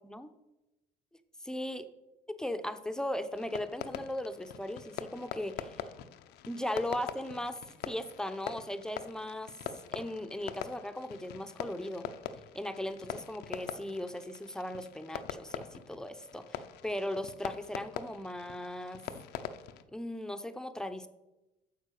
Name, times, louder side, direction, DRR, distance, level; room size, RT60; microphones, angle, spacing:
voice 1, 1.4-1.8 2.4-5.8 6.5-7.6 7.9-9.5 9.9-12.1 12.5-19.1 19.9-21.1, left 1 dB, 5° left, 9 dB, 0.8 m, -37 dB
Fireworks, 3.3-19.8, left 9 dB, 80° left, 0.7 m, -43 dB
9.4 x 7.2 x 6.6 m, 1.0 s
cardioid pair, 110°, 17 cm